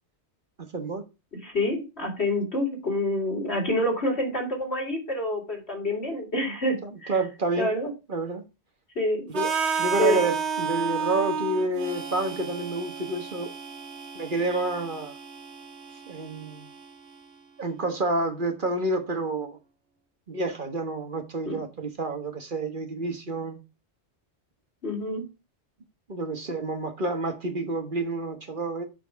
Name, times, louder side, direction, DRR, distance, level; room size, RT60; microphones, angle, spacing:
voice 1, 0.7-1.0 6.4-6.6 7.1-7.7 8.1-8.4 9.3-9.5 9.8-13.5 14.1-15.2 16.1-16.7 17.6-19.6 20.3-23.6 26.1-28.8, right 2 dB, 45° right, 1.5 m, -29 dB
voice 2, 1.4-7.1 7.6-7.9 9.0-9.3 10.0-10.2 21.5-21.6 24.8-25.3, left 1 dB, 65° left, 3.7 m, -27 dB
Harmonica, 9.3-17.2, right 6 dB, 70° right, 1.3 m, -32 dB
6.8 x 6.0 x 5.7 m
omnidirectional pair, 1.2 m